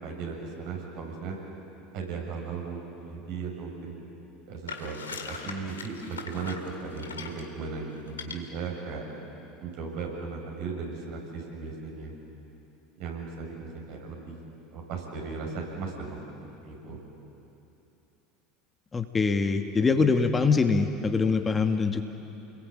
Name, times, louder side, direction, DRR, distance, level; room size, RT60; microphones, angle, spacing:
voice 1, 0.0-1.4 1.9-3.9 4.5-5.0 5.3-9.0 9.6-12.1 13.0-14.4 14.7-17.0, right 4 dB, 60° right, 0 dB, 6.7 m, -36 dB
sound 1, 4.7-7.5 8.1-8.4, left 5 dB, 85° left, 1.9 m, -40 dB
voice 2, 18.9-22.0, left 4 dB, 20° left, 6 dB, 1.6 m, -24 dB
28.5 x 21.0 x 8.8 m, 3.0 s
hypercardioid pair, 75°, 0 cm